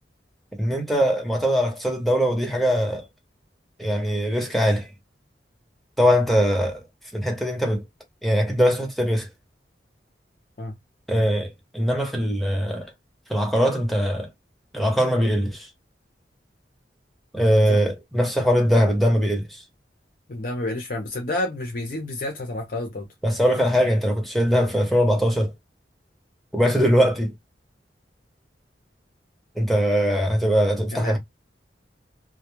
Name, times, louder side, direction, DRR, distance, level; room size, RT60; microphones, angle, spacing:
voice 1, 0.6-3.1 3.8-4.9 6.0-6.8 7.1-7.8 8.2-9.3 11.1-12.9 13.3-14.3 14.7-15.7 17.3-19.6 23.2-25.5 26.5-27.3 29.6-31.2, equal, ahead, 0.6 m, -21 dB
voice 2, 20.3-23.1 30.9-31.2, left 1 dB, 50° left, 0.5 m, -29 dB
2.3 x 2.1 x 2.9 m
head